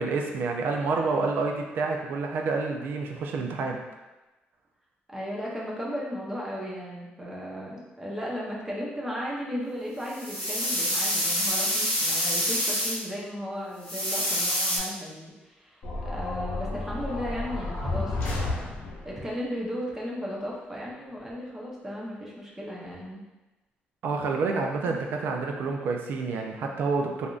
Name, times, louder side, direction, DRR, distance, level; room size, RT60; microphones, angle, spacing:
voice 1, 0.0-3.8 24.0-27.3, right 4 dB, 65° right, 2 dB, 0.4 m, -28 dB
voice 2, 5.1-18.8 19.0-23.2 24.8-25.0, equal, 10° right, -5 dB, 0.7 m, -35 dB
sound 1, 10.1-13.0 13.8-14.8, equal, 15° left, 1.1 m, -27 dB
sound 2, 15.8-19.2, left 2 dB, 70° left, 0.7 m, -31 dB
3.4 x 2.6 x 2.4 m, 1.1 s
cardioid pair, 135°, 4 cm